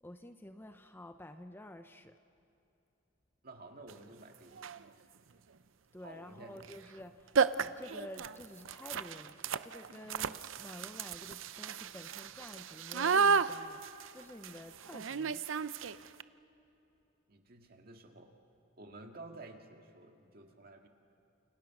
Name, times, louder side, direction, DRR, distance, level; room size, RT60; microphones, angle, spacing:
voice 1, 0.0-2.1 5.9-15.6, left 1 dB, 10° left, 8 dB, 0.6 m, -50 dB
voice 2, 3.4-4.7 6.0-6.6 17.3-18.3 18.8-20.9, right 2 dB, 50° right, 3 dB, 2.1 m, -52 dB
sound 1, 3.9-4.0 4.5-4.9 6.6-6.8 7.0-7.1 7.3-16.2, right 5 dB, 80° right, 0.6 m, -33 dB
30.0 x 28.5 x 6.0 m, 2.9 s
head